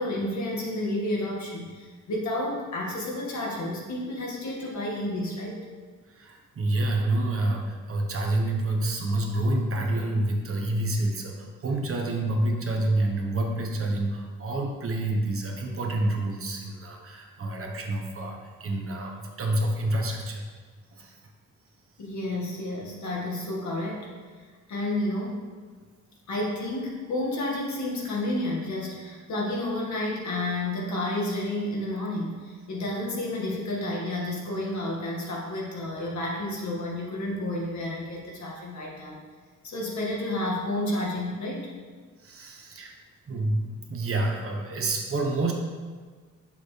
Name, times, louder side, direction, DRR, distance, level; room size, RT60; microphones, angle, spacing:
voice 1, 0.0-5.6 22.0-24.1 24.7-25.4 26.3-39.2 39.6-41.7, left 1 dB, 65° left, -3 dB, 2.0 m, -31 dB
voice 2, 6.1-20.4 20.9-21.2 42.2-42.9 43.3-45.5, right 2 dB, 45° right, 1 dB, 1.1 m, -28 dB
9.0 x 7.0 x 3.3 m, 1.5 s
wide cardioid pair, 150°, 31 cm